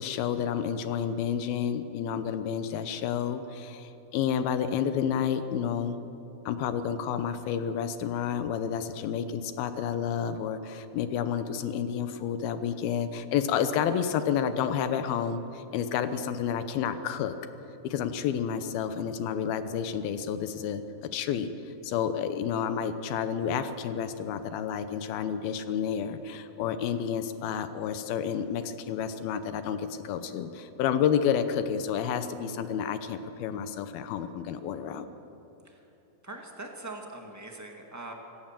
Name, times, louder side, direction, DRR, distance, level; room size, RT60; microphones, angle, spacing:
voice 1, 0.0-6.0 6.5-17.3 17.8-21.5 21.8-35.1, left 8 dB, 80° left, 10 dB, 2.8 m, -30 dB
voice 2, 36.2-38.1, right 2 dB, 15° right, 2 dB, 0.6 m, -42 dB
26.0 x 16.5 x 7.5 m, 3.0 s
omnidirectional pair, 4.3 m